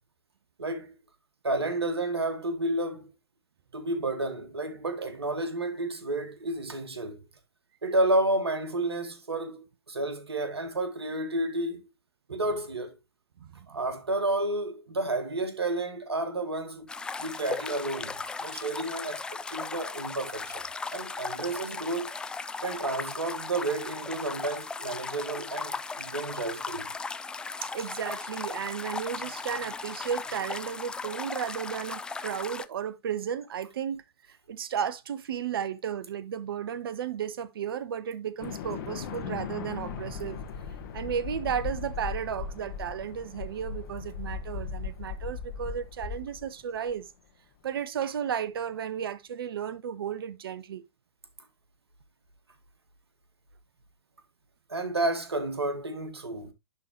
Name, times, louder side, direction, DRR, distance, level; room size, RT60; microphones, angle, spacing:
voice 1, 0.6-0.9 1.4-3.1 3.7-7.2 7.8-11.8 12.3-13.0 13.7-16.9 17.2-20.7 20.9-22.1 22.6-26.9 54.7-56.5, right 2 dB, 80° right, 1.8 m, -31 dB
voice 2, 13.4-13.8 27.7-34.0 34.3-40.6 40.9-47.1 47.6-50.8, right 8 dB, 60° right, 0.9 m, -34 dB
sound 1, 16.9-32.7, left 4 dB, 5° left, 0.3 m, -37 dB
sound 2, 38.4-46.9, left 6 dB, 50° left, 1.5 m, -38 dB
11.0 x 3.9 x 3.0 m
figure-of-eight pair, 110°, 13 cm